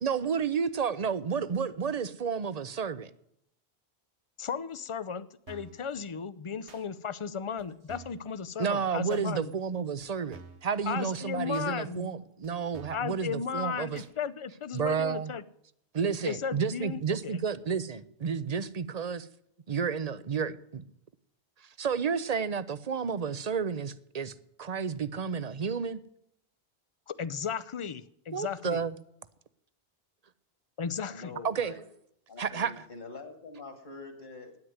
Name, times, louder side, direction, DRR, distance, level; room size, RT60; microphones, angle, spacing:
voice 1, 0.0-3.1 8.6-14.0 14.7-15.3 15.9-19.3 19.7-20.8 21.8-26.0 28.3-29.0 31.4-31.7 32.4-32.7, right 6 dB, 45° right, 15 dB, 0.7 m, -31 dB
voice 2, 4.4-9.5 10.9-12.1 12.9-15.4 16.3-17.4 27.1-28.8 30.8-31.3, left 6 dB, 40° left, 16 dB, 0.5 m, -35 dB
sound 1, 5.5-5.8 6.7-6.8 7.6-7.7 7.9-8.2 9.1-9.3 10.0-10.1 10.3-10.7 11.5-11.7 12.4-12.5 12.7-13.1 13.9-14.1 14.9-15.0, right 4 dB, 90° right, 1.5 m, -49 dB
voice 3, 31.0-31.9 32.3-34.6, left 3 dB, 55° left, 5 dB, 2.1 m, -45 dB
9.6 x 9.4 x 9.4 m, 0.73 s
omnidirectional pair, 1.1 m